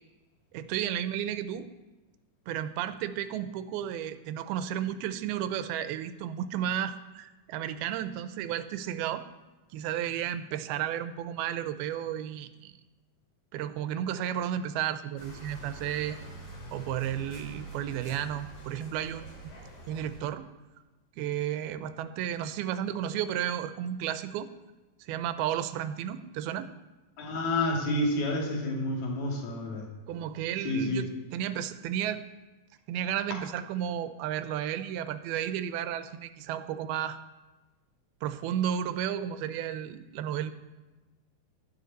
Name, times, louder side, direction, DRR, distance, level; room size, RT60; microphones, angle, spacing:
voice 1, 0.5-1.7 2.5-9.2 9.7-12.7 13.5-16.2 16.7-19.5 19.9-20.5 21.2-24.5 25.0-26.7 30.1-31.1 31.3-32.2 32.9-37.2 38.2-40.5, right 10 dB, 85° right, 12 dB, 2.5 m, -33 dB
sound 1, 15.2-20.2, right 2 dB, 80° left, 5.7 m, -45 dB
voice 2, 27.2-29.9 30.6-31.0, left 1 dB, 50° left, -1 dB, 3.4 m, -29 dB
15.5 x 12.0 x 4.1 m, 1.1 s
omnidirectional pair, 4.5 m